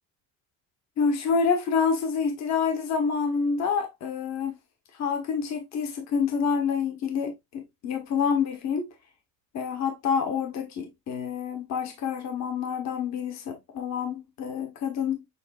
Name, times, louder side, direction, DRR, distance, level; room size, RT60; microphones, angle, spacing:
voice 1, 1.0-4.6 5.0-8.8 9.5-15.2, left 6 dB, 50° left, 1.2 m, -27 dB
7.0 x 2.5 x 2.4 m
cardioid pair, 155°, 36 cm